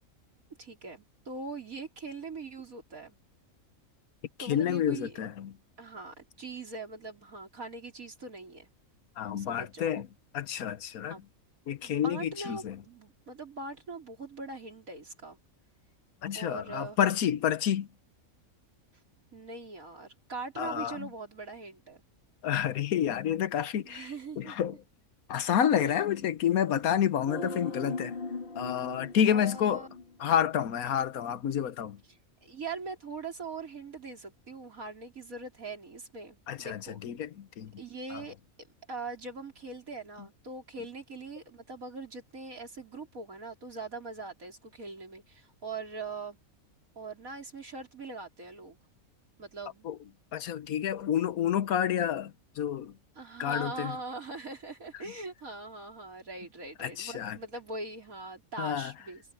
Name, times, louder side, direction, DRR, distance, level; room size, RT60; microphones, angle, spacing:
voice 1, 0.6-3.2 4.4-5.2 5.8-8.7 9.3-10.0 11.1-11.3 11.8-15.4 16.3-17.0 19.3-22.0 23.8-24.6 25.8-26.0 29.3-29.9 32.4-37.0 37.8-38.4 38.9-46.4 47.0-48.8 49.4-49.9 53.2-59.2, right 3 dB, 75° right, 4.6 m, -41 dB
voice 2, 4.4-5.5 9.2-10.1 10.3-11.2 11.7-12.8 16.2-17.9 20.6-21.1 22.4-24.1 24.4-24.8 25.3-28.1 28.6-29.9 30.2-32.0 36.5-37.7 38.1-38.2 49.8-50.0 50.3-52.9 53.4-54.0 56.8-57.4 58.6-58.9, left 9 dB, 90° left, 1.4 m, -29 dB
sound 1, 27.3-30.6 30.8-30.9, left 3 dB, 40° left, 2.1 m, -39 dB
omnidirectional pair, 1.5 m